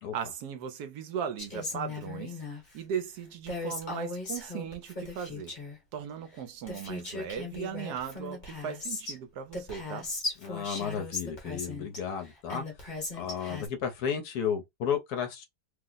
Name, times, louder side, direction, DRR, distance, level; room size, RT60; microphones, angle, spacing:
voice 1, 0.1-2.4 2.7-5.5 5.9-10.1, right 8 dB, 75° right, 1.1 m, -37 dB
Female speech woman speaking, 1.4-2.6 3.5-5.8 6.4-6.5 6.7-9.2 9.5-12.0 12.5-13.7, left 3 dB, 30° left, 1.0 m, -38 dB
voice 2, 10.4-15.4, left 7 dB, 70° left, 1.1 m, -33 dB
3.0 x 2.0 x 3.8 m
omnidirectional pair, 1.8 m